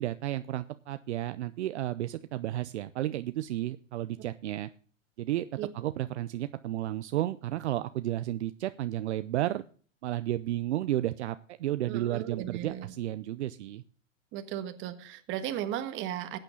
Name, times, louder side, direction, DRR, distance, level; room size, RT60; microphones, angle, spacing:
voice 1, 0.0-4.7 5.2-5.5 5.7-9.6 10.0-13.8, right 14 dB, 60° right, 12 dB, 0.7 m, -32 dB
voice 2, 11.9-12.9 14.3-16.4, right 11 dB, 30° right, 9 dB, 1.5 m, -36 dB
14.5 x 9.1 x 3.9 m, 0.43 s
hypercardioid pair, 120°, 38 cm